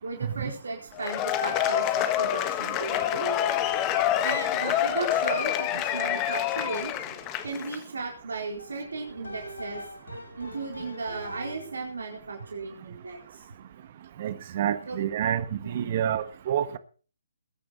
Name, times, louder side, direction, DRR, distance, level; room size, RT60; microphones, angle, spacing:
voice 1, 0.0-3.7 4.2-6.9 7.4-9.8 10.4-13.5 14.9-15.0 15.6-15.9, right 4 dB, 65° right, 0 dB, 4.3 m, -36 dB
Cheering / Applause / Crowd, 1.0-7.8, left 11 dB, 20° left, 1.5 m, -27 dB
sound 1, 8.6-11.9, left 1 dB, 75° left, 5.2 m, -42 dB
voice 2, 14.2-16.8, right 10 dB, 40° right, 12 dB, 1.4 m, -28 dB
21.0 x 10.0 x 4.2 m, 0.38 s
figure-of-eight pair, 135°, 0 cm